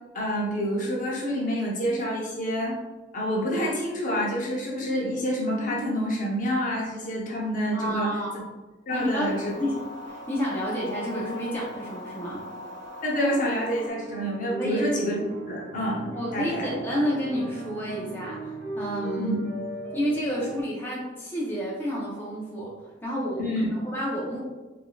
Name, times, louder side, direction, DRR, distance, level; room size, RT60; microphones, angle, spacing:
voice 1, 0.1-2.7 3.1-8.1 8.9-9.5 13.0-15.2 15.5-16.7 19.2-19.4 23.4-23.7, equal, 45° left, -3 dB, 0.8 m, -27 dB
voice 2, 7.7-8.3 8.9-9.8 10.1-12.5 14.6-14.8 16.1-19.4 19.9-22.7 23.0-24.4, equal, 10° left, -6 dB, 0.7 m, -30 dB
sound 1, 8.9-13.9, left 1 dB, 70° right, 0.8 m, -40 dB
sound 2, 13.5-20.6, right 1 dB, 35° right, 0.7 m, -37 dB
4.8 x 2.6 x 2.3 m, 1.2 s
head